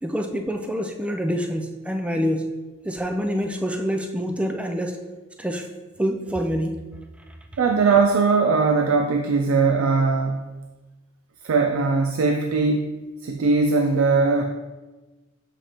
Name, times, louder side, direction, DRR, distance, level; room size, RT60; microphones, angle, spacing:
voice 1, 0.0-2.5 2.9-5.0 5.4-5.7 6.0-6.8, equal, 5° right, 4 dB, 0.4 m, -26 dB
voice 2, 7.6-10.5 11.4-12.9 13.2-14.4, right 4 dB, 90° right, 5 dB, 0.4 m, -20 dB
6.9 x 5.0 x 2.9 m, 1.2 s
head